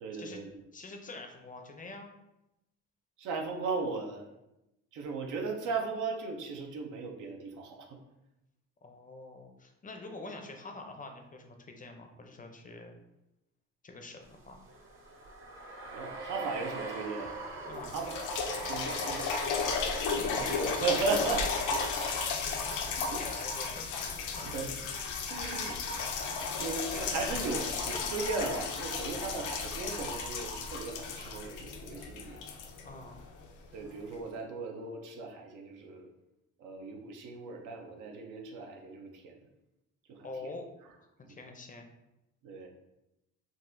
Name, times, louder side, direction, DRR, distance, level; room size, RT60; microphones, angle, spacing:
voice 1, 0.0-0.5 3.2-4.2 4.9-8.0 15.9-17.3 17.9-18.1 18.6-19.3 20.0-21.5 22.9-23.2 24.5-24.7 25.3-26.2 26.6-32.4 33.7-36.1 36.6-39.4 40.1-40.3 41.3-41.4 42.4-42.7, right 4 dB, 80° right, 2 dB, 0.6 m, -36 dB
voice 2, 0.7-2.1 8.8-12.9 13.8-14.6 17.6-18.0 19.5-20.2 22.7-24.7 32.8-33.2 40.2-40.7 41.0-41.8, left 2 dB, 25° left, 4 dB, 0.5 m, -46 dB
sound 1, 14.3-21.4, right 2 dB, 40° right, 0.8 m, -42 dB
sound 2, 17.3-17.4 17.8-33.5 34.1-34.2, left 5 dB, 80° left, 0.5 m, -34 dB
3.9 x 2.4 x 2.6 m, 0.91 s
cardioid pair, 90°, 30 cm